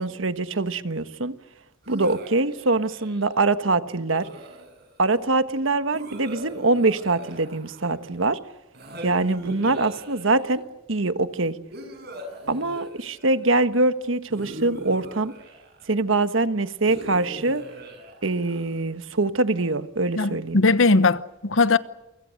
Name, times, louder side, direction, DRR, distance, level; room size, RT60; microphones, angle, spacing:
voice 1, 0.0-1.4 1.9-4.3 5.0-8.4 9.0-10.6 10.9-11.6 12.5-15.3 15.9-17.6 18.2-20.6, right 2 dB, 70° right, 1.4 m, -23 dB
sound 1, 1.8-3.4 4.1-5.0 5.9-8.1 8.7-10.6 11.7-13.5 14.3-16.0 16.9-18.8, right 1 dB, 55° right, 7.9 m, -40 dB
voice 2, 20.2-21.8, left 3 dB, 70° left, 1.0 m, -19 dB
28.5 x 24.0 x 6.5 m
head